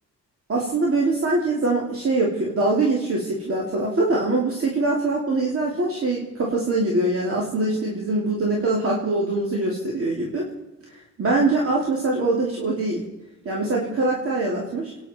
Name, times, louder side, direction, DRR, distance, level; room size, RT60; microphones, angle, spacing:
voice 1, 0.5-10.5 11.2-13.0 13.4-14.9, right 2 dB, 50° right, -3 dB, 2.9 m, -23 dB
28.0 x 10.0 x 4.4 m, 1.0 s
wide cardioid pair, 155°, 30 cm